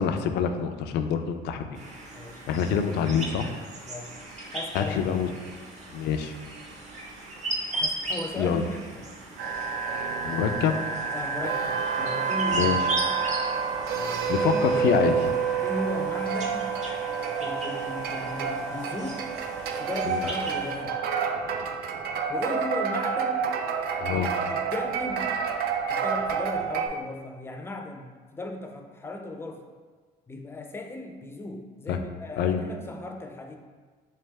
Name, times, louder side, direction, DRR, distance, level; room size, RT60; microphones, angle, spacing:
voice 1, 0.0-1.8 2.5-3.5 4.7-5.3 5.9-6.3 8.4-8.6 10.2-10.8 12.5-12.9 14.3-15.1 20.1-20.2 24.0-24.3 31.9-32.0 32.4-32.6, left 7 dB, 80° left, 7 dB, 0.4 m, -26 dB
sound 1, 1.7-20.8, right 1 dB, 45° right, 0.8 m, -38 dB
voice 2, 2.1-2.4 3.9-4.3 4.5-5.1 7.7-9.1 10.7-10.8 11.1-12.8 14.4-15.0 15.6-16.8 17.4-19.3 19.7-21.0 22.3-23.5 24.1-25.3 25.9-29.6 30.3-33.6, left 2 dB, 15° left, 3 dB, 0.4 m, -36 dB
sound 2, 9.4-26.9, right 6 dB, 65° right, 0.4 m, -28 dB
3.4 x 3.3 x 3.3 m, 1.4 s
cardioid pair, 110°, 17 cm